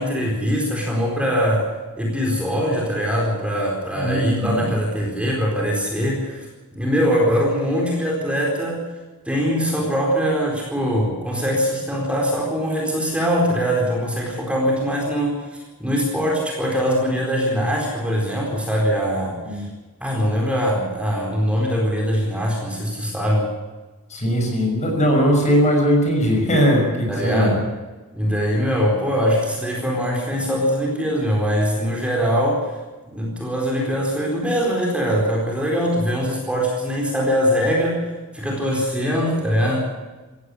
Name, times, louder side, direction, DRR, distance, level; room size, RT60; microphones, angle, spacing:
voice 1, 0.0-1.7 2.0-6.5 6.8-8.9 9.3-19.6 20.0-23.5 27.1-27.6 28.2-32.7 33.1-39.8, equal, 5° right, -2 dB, 4.3 m, -22 dB
voice 2, 4.0-4.7 19.5-19.6 24.1-27.6, equal, 35° left, 2 dB, 6.1 m, -19 dB
17.0 x 15.5 x 9.9 m, 1.2 s
head